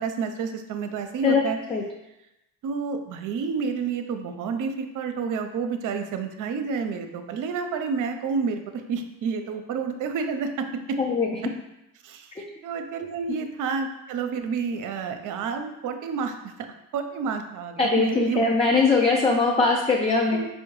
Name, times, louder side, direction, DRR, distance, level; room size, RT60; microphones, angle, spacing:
voice 1, 0.0-1.6 2.6-11.0 12.0-16.5 16.9-18.4 20.3-20.5, right 5 dB, 50° right, 7 dB, 0.5 m, -29 dB
voice 2, 11.0-11.3 12.4-12.5 17.8-20.4, left 4 dB, 15° left, -1 dB, 0.4 m, -21 dB
4.2 x 2.1 x 3.1 m, 0.91 s
hypercardioid pair, 60°, 39 cm